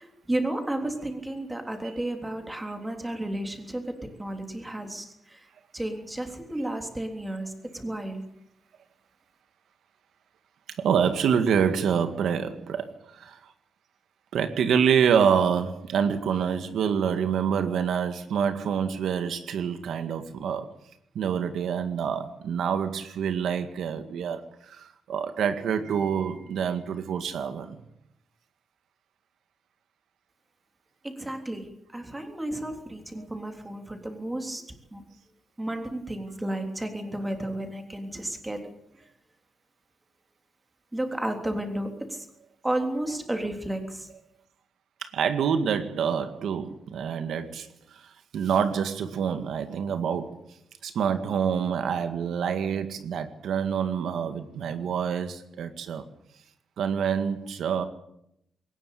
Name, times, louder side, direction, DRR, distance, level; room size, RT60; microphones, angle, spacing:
voice 1, 0.0-5.5 5.7-8.2 31.0-31.7 31.9-34.6 34.9-35.0 35.6-38.6 40.9-42.3 42.6-44.1, right 1 dB, 10° right, 5 dB, 3.5 m, -32 dB
voice 2, 10.8-13.4 14.3-20.7 21.2-27.8 45.0-50.4 50.8-56.0 56.8-57.8, right 7 dB, 85° right, 9 dB, 2.0 m, -27 dB
21.5 x 19.0 x 8.6 m, 0.77 s
wide cardioid pair, 150°, 0 cm